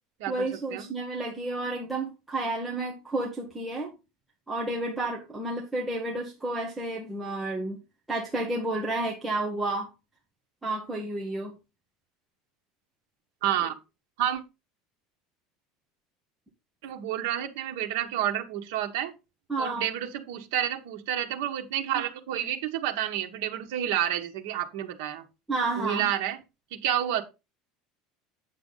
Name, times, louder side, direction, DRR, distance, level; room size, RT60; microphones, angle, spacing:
voice 1, 0.3-3.9 4.5-7.8 8.1-9.9 10.6-11.5 19.5-19.9 25.5-26.1, right 2 dB, 5° right, -2 dB, 1.4 m, -31 dB
voice 2, 13.4-13.8 14.2-14.4 16.8-19.1 19.6-25.2 25.8-26.4 26.7-27.2, right 11 dB, 70° right, 5 dB, 1.5 m, -29 dB
8.7 x 7.0 x 4.0 m, 0.27 s
cardioid pair, 175°, 0 cm